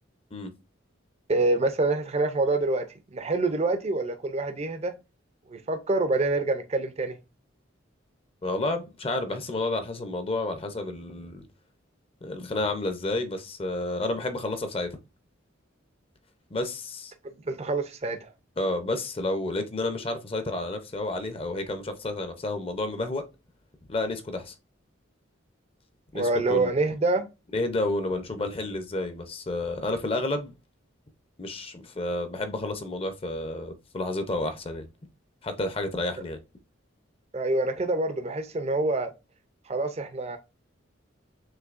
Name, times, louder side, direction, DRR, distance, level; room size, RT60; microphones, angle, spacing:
voice 1, 1.3-4.9 5.5-7.2 17.5-18.3 26.1-27.3 37.3-39.1 39.7-40.4, right 2 dB, 35° right, 0.5 m, -26 dB
voice 2, 8.4-11.4 12.2-15.0 16.5-17.1 18.6-23.2 23.9-24.5 26.1-26.7 27.5-30.5 31.4-34.9 35.4-36.4, left 2 dB, 30° left, 0.6 m, -30 dB
6.4 x 2.7 x 2.5 m
head